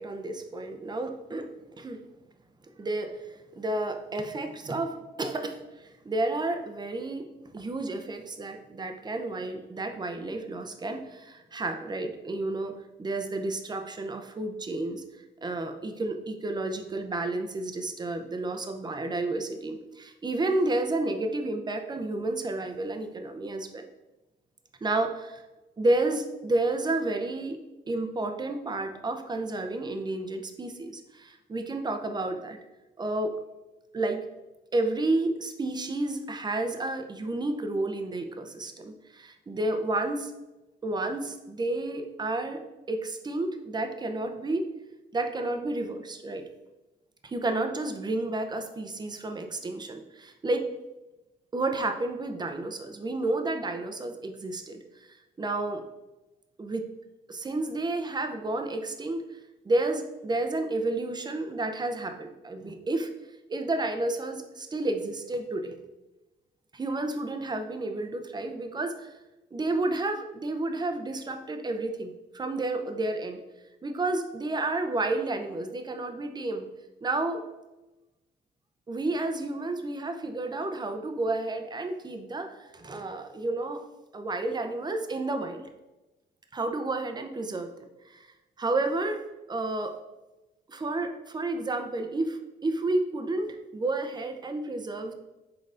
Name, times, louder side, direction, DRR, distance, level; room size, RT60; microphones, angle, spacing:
voice 1, 0.0-1.5 1.8-2.0 2.8-15.0 15.4-23.9 24.8-25.4 25.8-27.6 27.9-32.6 33.0-33.4 33.9-34.2 34.7-40.3 40.8-44.7 45.1-46.4 47.2-50.7 51.5-54.8 55.1-55.8 56.6-56.9 57.3-59.2 59.6-63.1 63.5-65.7 66.7-69.1 69.5-73.4 73.8-76.7 77.0-77.4 78.9-83.8 84.1-85.7 86.5-88.3 88.6-89.2 89.5-89.9 90.7-95.1, right 2 dB, 20° right, 6 dB, 0.5 m, -31 dB
5.4 x 3.8 x 2.5 m, 1.0 s
cardioid pair, 90°, 20 cm